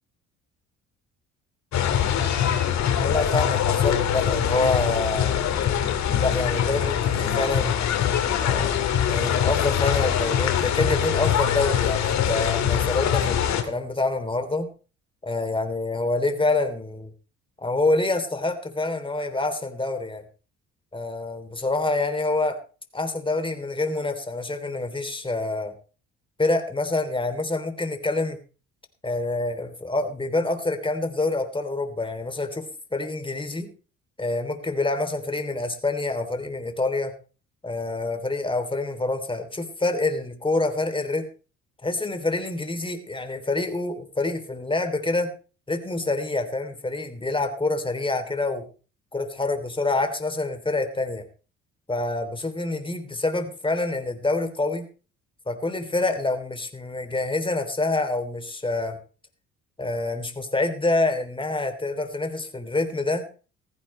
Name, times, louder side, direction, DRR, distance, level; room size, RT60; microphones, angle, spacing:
sound 1, 1.7-13.6, left 9 dB, 60° left, 2.5 m, -23 dB
voice 1, 3.0-5.3 6.1-7.9 8.4-14.7 15.2-17.1 17.6-20.2 20.9-22.6 22.9-25.7 26.4-28.4 29.0-33.7 34.2-37.1 37.6-41.3 41.8-45.3 45.7-48.6 49.1-51.2 51.9-54.9 55.5-59.0 59.8-63.3, left 2 dB, 15° left, 7 dB, 3.2 m, -26 dB
15.5 x 15.0 x 3.3 m, 0.35 s
hypercardioid pair, 65°, 31 cm